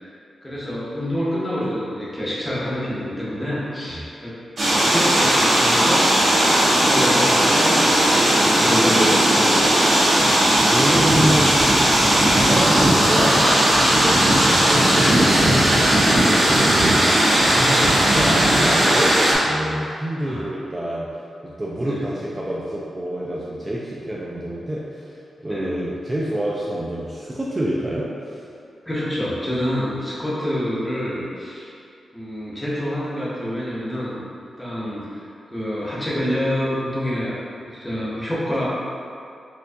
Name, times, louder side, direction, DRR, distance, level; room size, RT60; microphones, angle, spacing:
voice 1, 0.4-4.3 4.8-7.8 8.2-9.7 10.5-11.3 11.7-12.6 20.2-20.5 21.8-22.1 25.5-25.7 28.9-31.7 32.1-34.2 34.6-35.2 35.5-38.7, equal, 10° left, -8 dB, 0.9 m, -27 dB
sound 1, 4.6-19.3, right 1 dB, 60° right, 1.0 m, -17 dB
voice 2, 10.6-11.6 12.3-12.8 13.1-15.6 16.1-17.0 17.5-21.1 21.4-28.5, right 1 dB, 20° right, -6 dB, 0.4 m, -27 dB
4.3 x 2.4 x 2.6 m, 2.5 s
cardioid pair, 90°, 0 cm